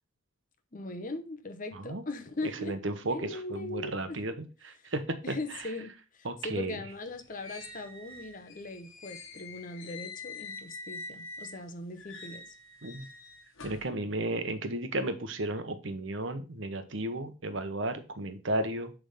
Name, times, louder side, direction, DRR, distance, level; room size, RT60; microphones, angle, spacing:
voice 1, 0.7-2.8 3.0-4.2 4.8-4.9 5.2-12.4, left 2 dB, 40° left, 0.8 m, -40 dB
voice 2, 1.7-2.0 2.4-5.0 5.3-5.4 6.2-6.8 12.8-13.1 13.6-18.9, right 1 dB, 60° right, 0.9 m, -34 dB
sound 1, 6.9-11.6 12.0-13.9, left 3 dB, 65° left, 1.3 m, -46 dB
6.9 x 3.6 x 5.5 m
head